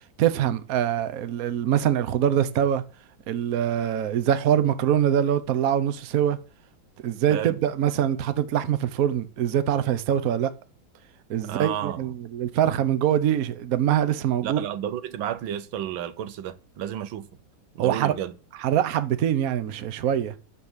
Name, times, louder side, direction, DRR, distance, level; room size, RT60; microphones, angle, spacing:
voice 1, 0.2-2.8 3.3-6.4 7.0-10.5 11.3-14.6 17.8-18.1 18.6-20.3, right 10 dB, 55° right, 1.2 m, -24 dB
voice 2, 11.4-12.1 14.4-17.3 17.8-18.3, right 10 dB, 85° right, 1.6 m, -32 dB
9.5 x 6.6 x 7.3 m
omnidirectional pair, 2.1 m